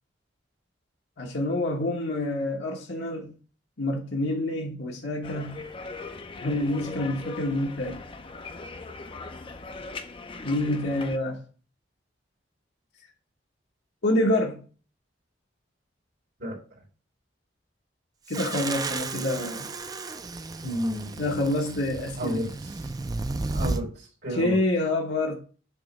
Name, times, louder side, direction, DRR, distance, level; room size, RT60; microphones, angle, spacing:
voice 1, 1.2-3.3 3.8-5.6 6.4-8.0 10.4-11.4 14.0-14.6 18.3-19.7 21.2-22.4 24.3-25.4, left 1 dB, 70° left, 1.1 m, -27 dB
sound 1, 5.2-11.2, left 3 dB, 30° left, 0.5 m, -40 dB
sound 2, 18.3-23.8, right 3 dB, 20° right, 0.4 m, -33 dB
voice 2, 20.6-21.1 22.2-22.7 23.5-24.5, equal, 65° right, 3.5 m, -31 dB
7.2 x 3.0 x 5.1 m
head